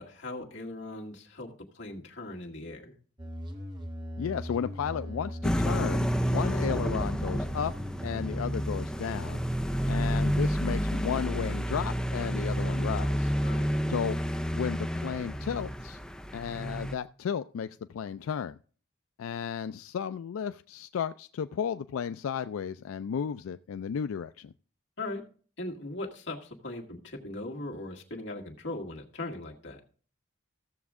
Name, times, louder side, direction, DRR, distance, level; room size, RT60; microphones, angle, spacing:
voice 1, 0.0-3.0 13.4-13.7 25.0-25.2 25.6-29.8, left 2 dB, 60° left, 0 dB, 1.9 m, -39 dB
sound 1, 3.2-8.3, equal, 20° right, 1.3 m, -39 dB
voice 2, 4.2-7.7 8.0-9.4 9.9-13.3 13.9-14.2 14.5-16.0 16.3-18.6 19.2-24.5, left 7 dB, 90° left, 12 dB, 0.3 m, -34 dB
sound 2, 5.4-17.0, equal, 5° left, 0.5 m, -30 dB
15.0 x 7.0 x 3.6 m, 0.43 s
head